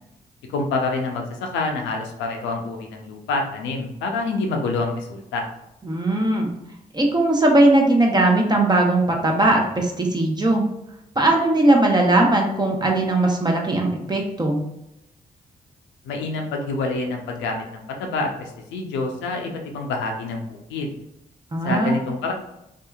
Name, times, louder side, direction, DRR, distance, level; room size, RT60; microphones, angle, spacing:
voice 1, 0.5-5.5 16.0-20.9 21.6-22.3, left 3 dB, 85° left, 2 dB, 0.5 m, -27 dB
voice 2, 5.8-6.5 6.9-10.7 11.2-14.6 21.5-22.0, right 2 dB, 20° right, 1 dB, 0.7 m, -19 dB
2.7 x 2.4 x 2.3 m, 0.84 s
supercardioid pair, 45°, 19 cm